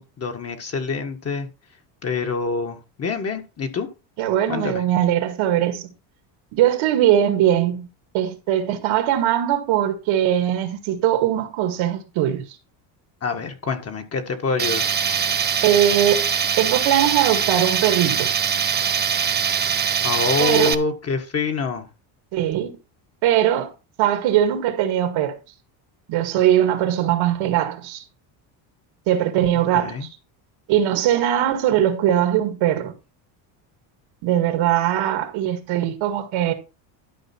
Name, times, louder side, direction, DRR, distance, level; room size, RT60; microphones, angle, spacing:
voice 1, 0.0-1.5 2.0-3.9 4.5-4.8 13.2-14.8 20.0-21.9 29.7-30.1, left 4 dB, 30° left, 1.6 m, -26 dB
voice 2, 4.2-5.9 6.5-7.9 8.1-12.6 15.6-16.3 16.6-18.3 20.4-20.8 22.3-22.8 23.2-23.7 24.0-25.4 26.1-28.0 29.1-30.1 30.7-32.9 34.2-36.5, right 11 dB, 70° right, 2.0 m, -20 dB
Tools, 14.6-20.7, right 7 dB, 20° right, 0.5 m, -22 dB
12.0 x 5.0 x 4.4 m
cardioid pair, 135°, 49 cm